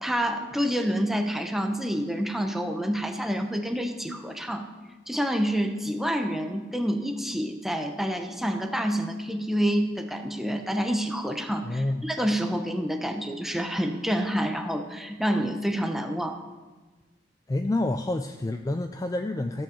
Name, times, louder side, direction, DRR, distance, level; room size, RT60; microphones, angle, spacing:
voice 1, 0.0-4.7 5.1-16.4, equal, ahead, 5 dB, 0.8 m, -28 dB
voice 2, 11.6-12.1 17.5-19.6, left 2 dB, 20° left, 7 dB, 0.3 m, -28 dB
14.5 x 5.4 x 7.1 m, 1.3 s
head